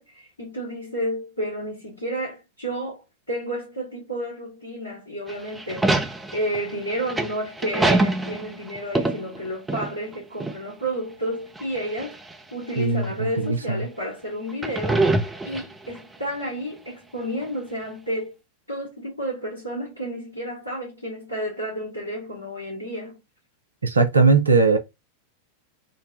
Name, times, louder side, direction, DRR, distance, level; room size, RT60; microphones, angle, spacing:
voice 1, 0.0-12.2 12.5-18.3 18.7-23.2, equal, 85° left, 1.4 m, -31 dB
sound 1, 5.3-10.2 10.4-10.6 11.6-12.3 13.0-13.1 14.5-16.0, right 2 dB, 10° right, 0.7 m, -24 dB
voice 2, 12.8-13.8 23.8-24.8, right 4 dB, 80° right, 0.7 m, -19 dB
3.9 x 2.2 x 3.7 m
figure-of-eight pair, 90°, 0 cm